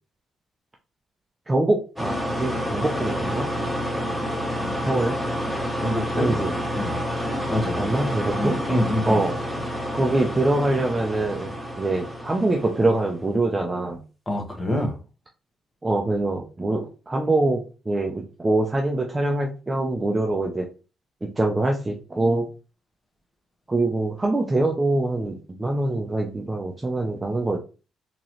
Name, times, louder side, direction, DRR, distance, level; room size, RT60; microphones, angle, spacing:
voice 1, 1.5-3.5 4.8-5.2 6.2-6.5 7.8-8.6 9.1-9.3 9.9-14.0 15.8-17.6 17.9-20.7 21.2-22.5 23.7-27.6, right 2 dB, 20° right, 1 dB, 0.6 m, -24 dB
sound 1, 2.0-13.2, equal, ahead, 1.5 m, -29 dB
voice 2, 4.6-4.9 5.8-6.3 6.7-6.9 7.5-7.8 8.4-9.2 14.3-15.0, left 1 dB, 20° left, 2 dB, 1.3 m, -26 dB
3.7 x 3.0 x 3.1 m, 0.34 s
cardioid pair, 90°, 0 cm